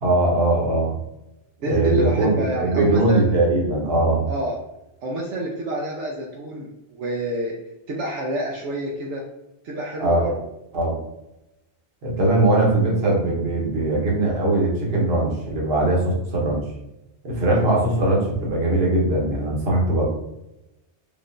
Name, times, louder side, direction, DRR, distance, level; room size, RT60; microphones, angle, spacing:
voice 1, 0.0-1.0 1.6-4.3 10.0-10.3 10.7-11.0 12.0-16.6 17.2-20.0, right 2 dB, 65° right, -3 dB, 1.3 m, -20 dB
voice 2, 1.6-3.3 4.3-4.6 5.0-7.6 7.9-9.3 9.6-10.3 17.5-17.7, equal, 85° right, -2 dB, 1.0 m, -28 dB
3.6 x 3.2 x 2.5 m, 0.89 s
omnidirectional pair, 1.2 m